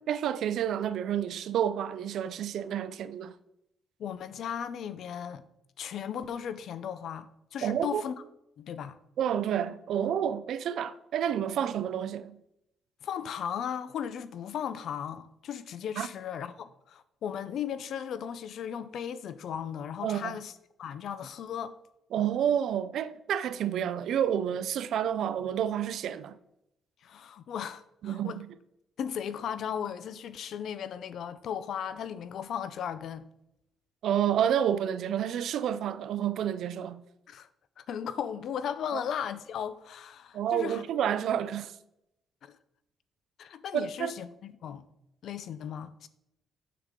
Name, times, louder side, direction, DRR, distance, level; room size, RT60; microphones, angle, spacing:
voice 1, 0.1-3.3 7.6-8.0 9.2-12.4 16.0-16.1 20.0-20.4 22.1-26.3 28.0-28.5 34.0-37.0 38.9-39.0 40.3-41.7 43.7-44.1, right 9 dB, 75° right, 0.4 m, -29 dB
voice 2, 4.0-5.4 5.8-8.1 8.6-9.0 13.0-20.5 20.8-21.8 27.0-28.4 29.0-33.3 37.3-37.5 37.8-40.8 42.4-42.6 43.4-44.9 45.2-46.1, left 8 dB, 70° left, 0.5 m, -36 dB
6.7 x 6.6 x 3.7 m
cardioid pair, 90°, 0 cm